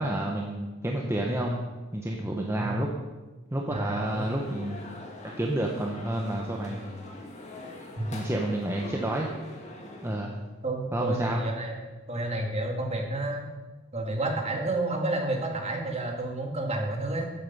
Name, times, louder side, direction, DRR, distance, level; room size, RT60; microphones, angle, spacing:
voice 1, 0.0-1.6 1.9-2.9 3.5-4.8 5.4-6.9 8.1-9.3 10.0-10.4 10.9-11.4, right 1 dB, 15° right, -1 dB, 1.0 m, -29 dB
voice 2, 3.7-4.3 8.0-8.1 10.6-13.5 13.9-17.3, right 2 dB, 30° right, 1 dB, 2.1 m, -30 dB
sound 1, 4.0-10.2, left 1 dB, 35° left, 2.1 m, -43 dB
14.0 x 8.6 x 5.5 m, 1.2 s
head